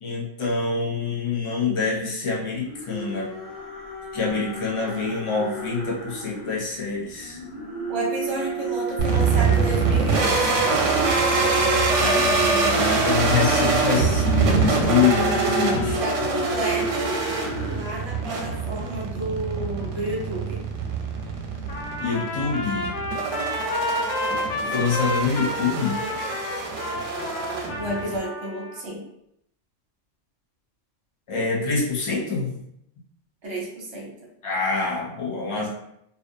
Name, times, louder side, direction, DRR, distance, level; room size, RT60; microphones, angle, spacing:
voice 1, 0.0-3.3 4.1-7.4 11.9-16.0 22.0-23.0 24.7-26.0 31.3-32.6 34.4-35.7, left 5 dB, 55° left, -3 dB, 0.3 m, -26 dB
sound 1, 2.5-6.6 7.2-18.3, right 2 dB, 20° left, 0.7 m, -32 dB
voice 2, 7.9-10.6 15.9-17.2 17.6-20.7 27.8-29.0 33.4-34.1, right 1 dB, 30° right, -3 dB, 0.6 m, -31 dB
sound 2, 9.0-28.2, right 4 dB, 85° right, 0.9 m, -24 dB
Trumpet, 21.7-28.8, left 1 dB, 70° left, 0.8 m, -30 dB
2.4 x 2.3 x 2.6 m, 0.76 s
omnidirectional pair, 1.3 m